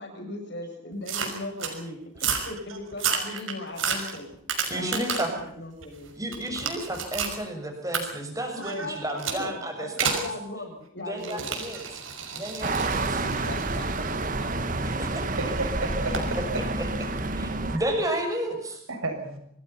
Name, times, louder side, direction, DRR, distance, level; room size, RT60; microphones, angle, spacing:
voice 1, 0.0-4.3 4.7-6.1 8.5-11.5 13.2-14.5, left 2 dB, 55° left, 3 dB, 7.6 m, -38 dB
sound 1, 1.1-1.8 2.1-2.5 2.9-5.4 5.8-7.4 7.9-8.0 9.2-9.4 10.0-10.3 11.2-15.1 16.1-16.3, right 6 dB, 70° right, 5.9 m, -31 dB
voice 2, 4.6-5.3 6.2-10.2 11.1-12.0 12.3-13.2 14.8-15.2 16.8-16.9 17.3-18.8, right 1 dB, 15° right, 3 dB, 6.6 m, -32 dB
sound 2, 12.6-17.8, right 2 dB, 40° right, 1.7 m, -29 dB
voice 3, 15.4-16.2 17.5-17.8 18.9-19.4, right 2 dB, 90° right, 4 dB, 7.2 m, -32 dB
27.0 x 19.5 x 5.8 m, 0.71 s
head